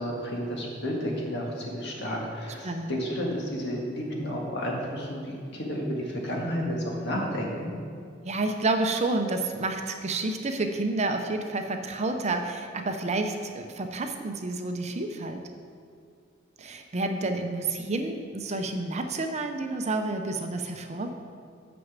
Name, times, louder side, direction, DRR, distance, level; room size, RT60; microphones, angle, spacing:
voice 1, 0.0-7.7, equal, 60° left, -2 dB, 1.7 m, -31 dB
voice 2, 8.2-15.4 16.6-21.1, right 2 dB, 35° right, 5 dB, 0.6 m, -29 dB
6.3 x 6.1 x 7.3 m, 2.4 s
head